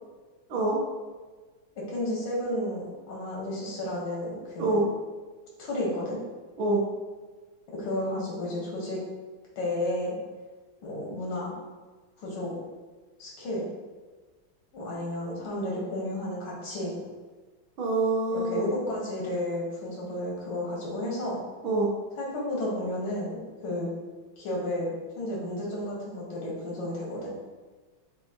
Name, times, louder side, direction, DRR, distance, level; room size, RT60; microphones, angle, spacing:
voice 1, 0.5-0.8 4.6-4.9 6.6-6.8 17.8-18.7 21.6-21.9, right 2 dB, 80° right, -3 dB, 1.9 m, -25 dB
voice 2, 1.9-4.9 5.6-6.2 7.7-9.0 9.6-10.2 10.8-11.5 12.2-12.6 13.2-13.7 14.7-17.0 18.3-21.4 22.2-23.9 24.4-24.9 25.2-27.3, left 1 dB, 90° left, -4 dB, 2.2 m, -32 dB
6.7 x 2.6 x 2.8 m, 1.3 s
omnidirectional pair, 2.2 m